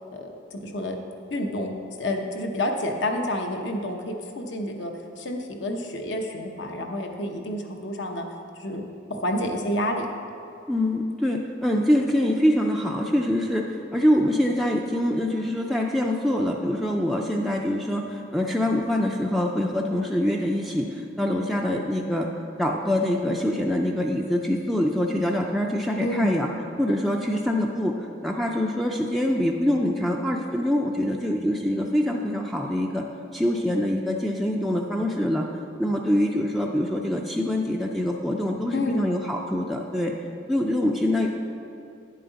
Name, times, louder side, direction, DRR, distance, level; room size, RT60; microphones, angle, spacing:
voice 1, 0.1-1.0 1.3-4.9 5.2-8.3 8.6-8.8 9.1-10.1 26.0-26.4 38.7-39.0, left 1 dB, 65° left, 3 dB, 0.8 m, -29 dB
voice 2, 10.7-22.3 22.6-26.5 26.8-27.9 28.2-33.0 33.3-35.4 35.8-40.1 40.5-41.3, left 1 dB, ahead, -1 dB, 0.3 m, -24 dB
9.4 x 7.6 x 4.0 m, 2.6 s
head